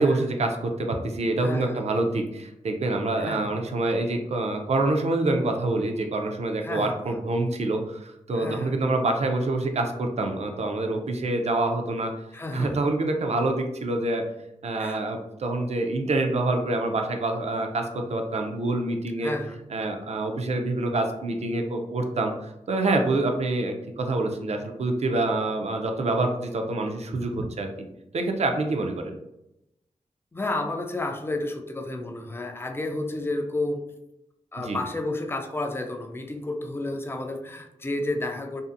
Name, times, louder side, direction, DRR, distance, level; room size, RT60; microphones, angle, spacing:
voice 1, 0.0-12.1 12.5-14.2 14.6-19.3 19.7-27.7 28.1-29.1 34.6-34.8, right 2 dB, 55° right, 4 dB, 0.4 m, -26 dB
voice 2, 1.4-1.8 3.2-3.5 6.6-7.2 8.4-8.8 12.3-12.8 14.8-15.0 19.2-19.6 30.3-33.8 34.5-38.6, left 2 dB, 20° left, 4 dB, 0.3 m, -31 dB
2.6 x 2.5 x 2.4 m, 0.87 s
wide cardioid pair, 90°, 13 cm